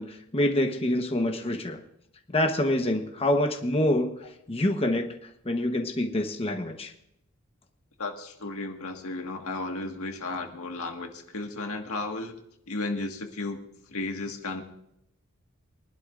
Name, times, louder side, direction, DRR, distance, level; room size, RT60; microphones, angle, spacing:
voice 1, 0.0-1.8 2.3-4.1 4.5-5.0 5.4-6.9, left 1 dB, 25° left, 4 dB, 1.1 m, -26 dB
voice 2, 8.0-12.4 12.7-13.6 13.9-14.6, left 2 dB, 85° left, 3 dB, 1.7 m, -34 dB
23.5 x 11.5 x 2.5 m, 0.77 s
head